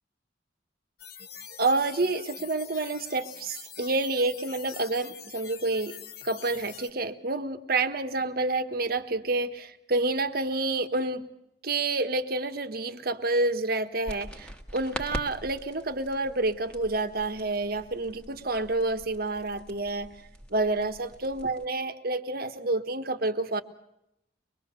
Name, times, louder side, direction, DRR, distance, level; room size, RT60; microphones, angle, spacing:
sound 1, 1.0-6.9, left 8 dB, 60° left, 1.4 m, -44 dB
voice 1, 1.6-6.0 6.2-11.3 11.6-20.1 20.5-23.6, right 2 dB, 55° right, 8 dB, 1.4 m, -28 dB
sound 2, 14.0-21.6, equal, 5° left, 1.6 m, -43 dB
24.0 x 22.0 x 6.8 m, 0.83 s
head